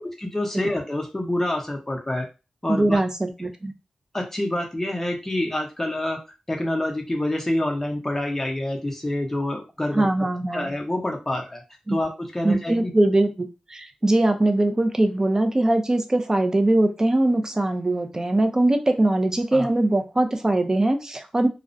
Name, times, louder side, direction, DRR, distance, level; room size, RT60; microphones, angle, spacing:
voice 1, 0.2-2.3 2.6-3.0 4.1-6.2 6.5-10.3 10.5-11.6 11.9-12.9 19.5-19.7, left 1 dB, 15° left, 1 dB, 0.7 m, -27 dB
voice 2, 2.7-3.7 9.9-10.7 11.9-12.0 12.4-21.5, right 1 dB, 25° right, 6 dB, 0.4 m, -21 dB
2.4 x 2.1 x 2.5 m, 0.28 s
wide cardioid pair, 90°, 2 cm